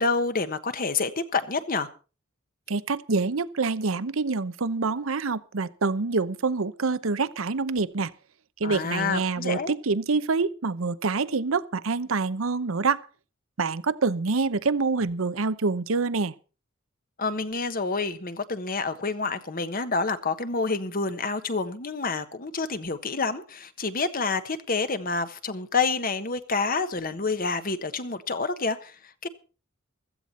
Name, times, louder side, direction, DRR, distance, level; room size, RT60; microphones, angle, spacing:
voice 1, 0.0-1.9 8.6-9.7 17.2-29.3, left 4 dB, 45° left, 1.3 m, -28 dB
voice 2, 2.7-8.1 8.6-13.0 13.6-16.3, right 4 dB, 75° right, 0.8 m, -26 dB
16.0 x 14.0 x 4.2 m
head